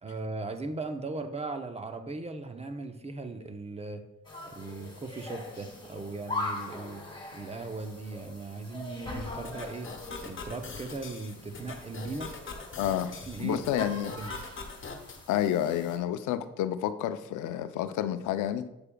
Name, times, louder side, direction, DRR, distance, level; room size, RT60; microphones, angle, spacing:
voice 1, 0.0-4.0 4.5-7.0 7.3-9.9 10.2-12.3 13.3-14.4, right 3 dB, 20° right, 0.7 m, -38 dB
sound 1, 4.2-16.0, left 2 dB, 15° left, 2.2 m, -42 dB
sound 2, 9.4-15.2, left 4 dB, 40° left, 1.2 m, -43 dB
voice 2, 12.8-13.1 13.4-14.2 15.3-18.7, left 11 dB, 85° left, 0.5 m, -29 dB
8.7 x 6.6 x 2.3 m
cardioid pair, 90°, 30 cm